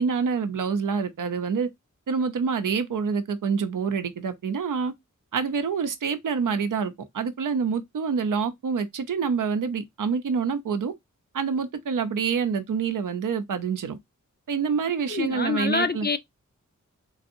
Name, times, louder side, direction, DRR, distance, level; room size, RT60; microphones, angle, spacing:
voice 1, 0.0-1.7 2.1-4.9 5.3-10.9 11.3-14.0 14.5-16.1, right 6 dB, 90° right, 0.6 m, -27 dB
voice 2, 15.1-16.2, left 4 dB, 35° left, 0.4 m, -26 dB
3.9 x 2.6 x 2.6 m
wide cardioid pair, 75°, 31 cm